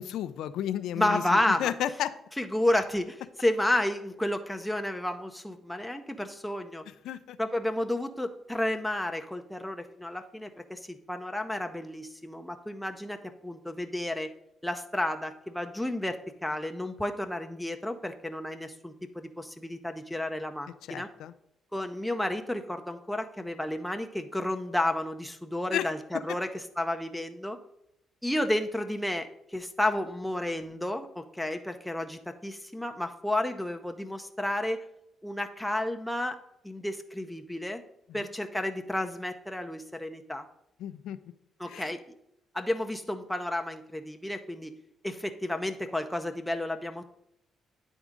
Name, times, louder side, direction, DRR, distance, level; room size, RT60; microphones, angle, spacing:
voice 1, 0.0-2.1 7.0-7.4 20.9-21.3 25.7-25.9 40.8-41.2 41.7-41.9, left 11 dB, 80° left, 13 dB, 0.3 m, -32 dB
voice 2, 1.0-1.7 2.4-6.8 7.4-14.3 14.6-21.1 21.7-27.6 28.2-34.8 35.2-36.4 36.6-37.8 38.1-40.5 41.6-42.2 42.5-44.7 45.0-47.1, left 1 dB, 5° left, 5 dB, 0.6 m, -31 dB
9.3 x 3.6 x 5.0 m, 0.80 s
cardioid pair, 90°, 0 cm